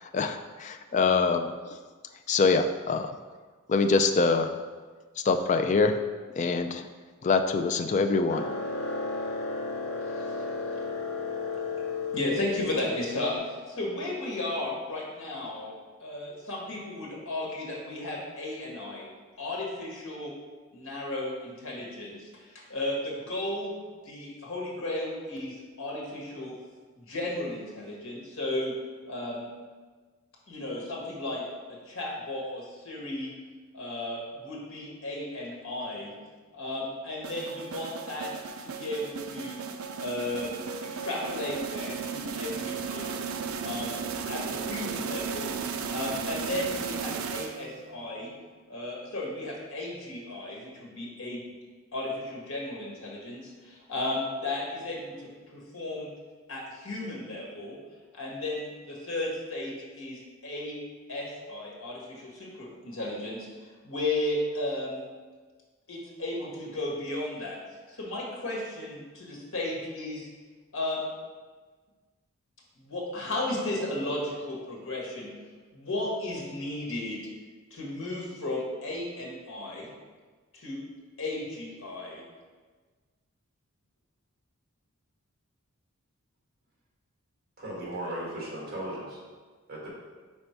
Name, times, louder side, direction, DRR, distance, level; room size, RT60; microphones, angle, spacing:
voice 1, 0.0-1.8 2.3-3.1 3.7-4.5 5.2-6.0 6.4-6.9 7.2-8.4, left 4 dB, 35° left, 6 dB, 0.3 m, -24 dB
sound 1, 8.3-13.3, left 4 dB, 80° left, 0.8 m, -33 dB
voice 2, 12.1-15.7 16.0-19.0 19.4-20.3 20.7-23.7 24.0-26.6 27.0-28.7 29.1-29.5 30.5-33.3 33.7-36.1 36.5-39.6 40.0-43.2 43.6-44.0 44.3-45.5 45.9-48.3 48.7-51.4 51.9-56.1 56.5-57.8 58.1-60.8 61.1-65.0 65.9-67.6 67.9-70.3 70.7-71.0 72.8-75.3 75.7-77.2 77.7-79.9 80.5-80.8 81.2-82.2, left 1 dB, 65° left, -3 dB, 1.6 m, -34 dB
sound 2, 37.2-47.9, right 6 dB, 70° right, 0.4 m, -35 dB
voice 3, 87.6-89.2 89.7-89.9, right 1 dB, 45° right, -5 dB, 1.9 m, -36 dB
5.4 x 4.4 x 4.5 m, 1.4 s
head